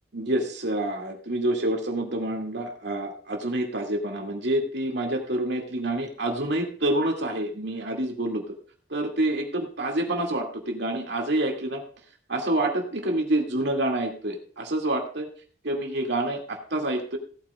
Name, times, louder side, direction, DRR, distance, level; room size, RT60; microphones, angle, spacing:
voice 1, 0.1-8.4 8.9-11.8 12.3-15.3 15.6-17.2, right 1 dB, 60° right, 2 dB, 2.4 m, -27 dB
17.0 x 8.9 x 2.4 m, 0.44 s
head